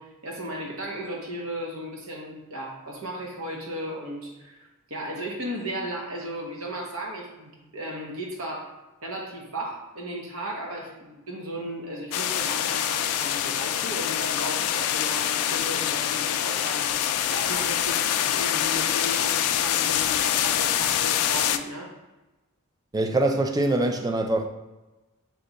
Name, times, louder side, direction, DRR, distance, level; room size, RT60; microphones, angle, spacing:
voice 1, 0.0-21.9, equal, 65° right, -1 dB, 1.0 m, -35 dB
sound 1, 12.1-21.6, left 10 dB, 80° left, 0.3 m, -25 dB
voice 2, 22.9-24.5, right 2 dB, 15° right, 5 dB, 0.3 m, -23 dB
3.6 x 3.2 x 4.0 m, 1.1 s
head